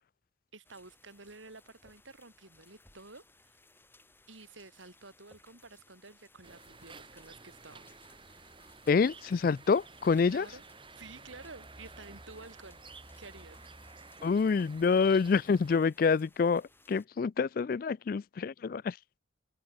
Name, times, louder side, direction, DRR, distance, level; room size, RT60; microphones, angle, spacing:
voice 1, 0.5-3.6 4.3-7.9 10.2-10.6 11.0-12.8 13.2-13.6, right 3 dB, 80° right, 4.4 m, -51 dB
sound 1, 0.6-17.1, left 2 dB, 10° left, 5.7 m, -63 dB
sound 2, 6.4-15.8, right 3 dB, 25° right, 3.9 m, -52 dB
voice 2, 8.9-10.5 14.2-19.2, left 5 dB, 45° left, 0.3 m, -27 dB
head